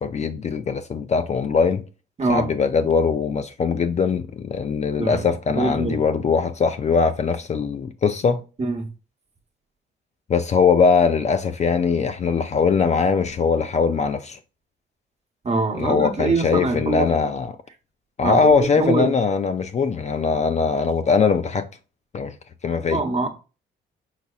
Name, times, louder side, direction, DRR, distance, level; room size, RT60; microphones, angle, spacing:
voice 1, 0.0-1.8 2.3-8.4 10.3-14.4 15.8-17.6 18.2-21.7 22.1-22.3 22.6-23.0, left 5 dB, 35° left, 0.4 m, -21 dB
voice 2, 5.6-6.0 8.6-8.9 15.4-17.1 18.2-19.1 22.9-23.3, right 3 dB, 35° right, 1.0 m, -23 dB
4.6 x 4.1 x 2.4 m
cardioid pair, 90°, 20 cm